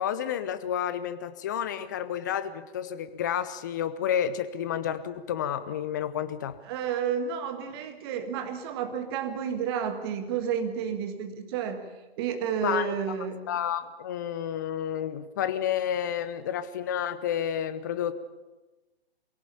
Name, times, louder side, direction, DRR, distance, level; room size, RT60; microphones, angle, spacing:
voice 1, 0.0-6.6 12.6-12.9 13.5-18.1, left 9 dB, 20° left, 13 dB, 0.6 m, -30 dB
voice 2, 6.7-11.9 12.2-13.5, right 7 dB, 25° right, 6 dB, 1.7 m, -31 dB
22.5 x 17.5 x 7.0 m, 1.1 s
figure-of-eight pair, 135°, 31 cm